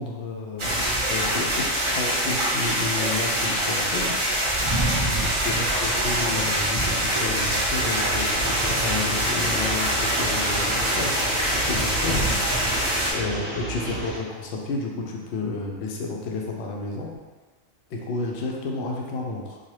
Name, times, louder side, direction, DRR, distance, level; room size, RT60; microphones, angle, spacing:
voice 1, 0.0-4.1 5.2-11.1 11.7-12.2 13.1-17.2 17.9-19.6, left 3 dB, 65° left, 0 dB, 0.7 m, -31 dB
sound 1, 0.6-13.1, right 1 dB, 55° right, 0.3 m, -24 dB
sound 2, 7.7-14.2, right 1 dB, 35° right, 0.8 m, -32 dB
2.7 x 2.3 x 3.1 m, 1.3 s
omnidirectional pair, 1.4 m